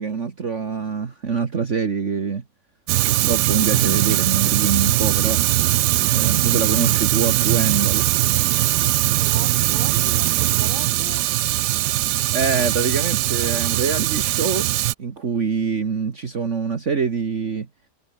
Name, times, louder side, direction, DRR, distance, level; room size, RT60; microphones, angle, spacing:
voice 1, 0.0-2.4 3.0-5.4 6.1-8.1 12.3-14.7 15.0-17.7, right 5 dB, 45° right, 1.9 m, -24 dB
Fire, 2.9-14.9, right 16 dB, 80° right, 1.2 m, -20 dB
voice 2, 9.1-11.3, right 1 dB, 25° right, 6.9 m, -39 dB
omnidirectional pair, 1.8 m